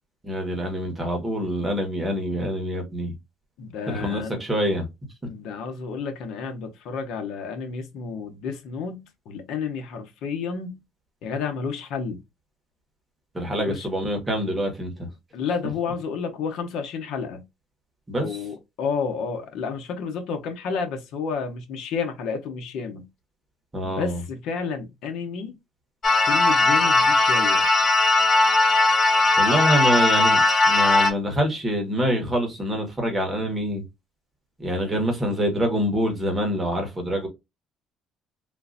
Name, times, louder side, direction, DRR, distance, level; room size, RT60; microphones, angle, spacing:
voice 1, 0.2-3.1 3.9-4.9 13.3-14.9 18.1-18.4 23.7-24.2 29.4-33.8 34.6-37.3, equal, 15° right, 1.3 m, -25 dB
voice 2, 3.6-4.4 5.3-10.8 11.2-12.2 13.5-13.9 15.3-17.4 18.2-23.1 23.8-25.5 26.2-27.7, left 5 dB, 65° left, 1.0 m, -31 dB
sound 1, 26.0-31.1, left 2 dB, 30° left, 0.7 m, -18 dB
3.7 x 2.6 x 2.6 m
cardioid pair, 150°, 0 cm